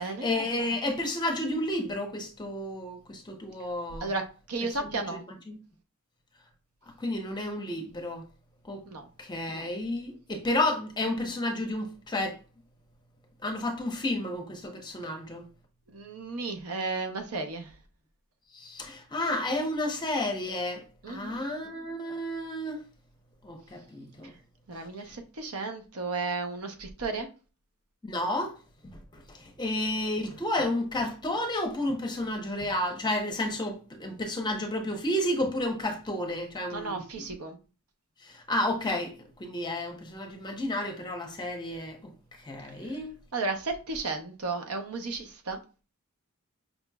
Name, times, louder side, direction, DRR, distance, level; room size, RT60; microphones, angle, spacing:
voice 1, 0.0-4.1 4.8-5.6 7.0-8.2 8.6-8.8 9.2-12.4 13.4-15.4 18.5-22.8 23.4-24.3 28.0-28.5 29.1-37.3 38.2-42.1 42.4-43.1, left 1 dB, 20° left, 0.7 m, -31 dB
voice 2, 4.0-5.2 8.9-9.1 15.9-17.7 21.0-21.4 24.7-27.3 36.7-37.6 42.8-42.9 43.3-45.6, right 3 dB, 80° right, 0.8 m, -33 dB
5.3 x 2.9 x 2.3 m
head